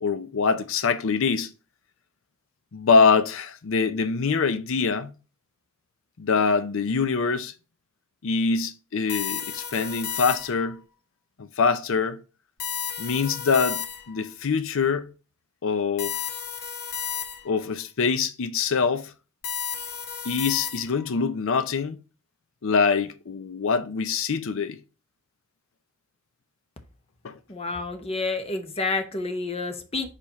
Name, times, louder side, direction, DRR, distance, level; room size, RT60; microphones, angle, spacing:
voice 1, 0.0-1.5 2.7-5.1 6.2-7.5 8.2-10.8 11.4-12.2 13.0-15.1 15.6-16.2 17.4-19.1 20.2-22.0 22.6-24.8 27.2-27.4, left 5 dB, 65° left, 0.6 m, -24 dB
sound 1, 9.1-10.8 12.6-14.3 16.0-17.6 19.4-21.1, left 7 dB, 50° left, 1.2 m, -33 dB
voice 2, 27.5-30.1, left 3 dB, 30° left, 0.9 m, -29 dB
4.9 x 4.3 x 5.3 m
head